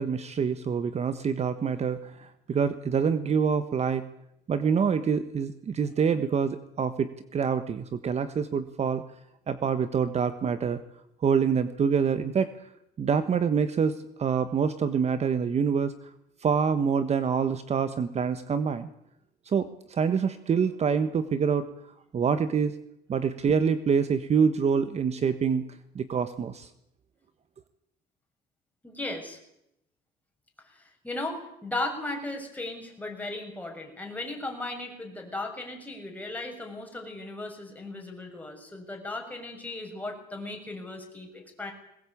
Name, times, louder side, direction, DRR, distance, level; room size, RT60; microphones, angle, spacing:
voice 1, 0.0-4.0 4.5-9.0 9.5-10.8 11.2-12.5 13.0-15.9 16.4-18.9 19.5-21.7 22.1-22.7 23.1-25.6 25.9-26.7, right 6 dB, 40° right, 11 dB, 1.3 m, -26 dB
voice 2, 28.8-29.4 30.6-41.7, left 2 dB, 10° left, 2 dB, 6.5 m, -36 dB
21.0 x 19.5 x 8.6 m, 0.80 s
cardioid pair, 110°, 17 cm